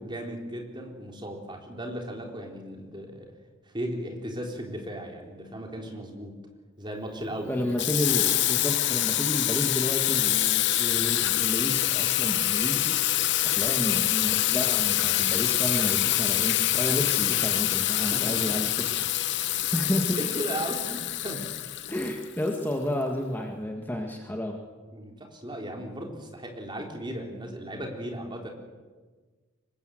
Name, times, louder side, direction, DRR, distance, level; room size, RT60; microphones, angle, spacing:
voice 1, 0.0-3.3 3.7-6.4 6.8-7.6 13.6-13.7 17.9-18.5 19.9-21.4 24.9-28.5, right 1 dB, 20° right, 2 dB, 3.7 m, -36 dB
voice 2, 7.5-13.0 13.5-20.2 21.9-24.6, left 1 dB, 10° left, 2 dB, 1.7 m, -31 dB
Water tap faucet / Sink (filling or washing), 7.8-22.5, left 14 dB, 60° left, 0.9 m, -25 dB
24.5 x 20.5 x 7.9 m, 1.4 s
head